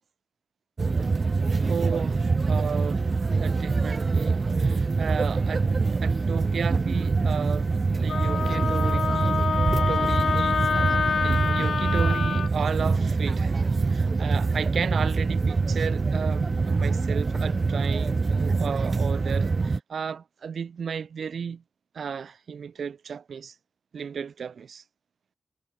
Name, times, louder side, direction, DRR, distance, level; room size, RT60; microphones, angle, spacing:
sound 1, 0.8-19.8, right 4 dB, 40° right, 2.1 m, -24 dB
voice 1, 1.6-2.2 2.5-3.1 3.4-5.7 6.0-7.7 8.0-10.6 11.2-13.5 13.9-21.6 21.9-23.5 23.9-24.8, right 6 dB, 80° right, 2.2 m, -34 dB
Wind instrument woodwind instrument, 8.1-12.5, left 6 dB, 70° left, 2.4 m, -27 dB
wide cardioid pair, 105°, 0 cm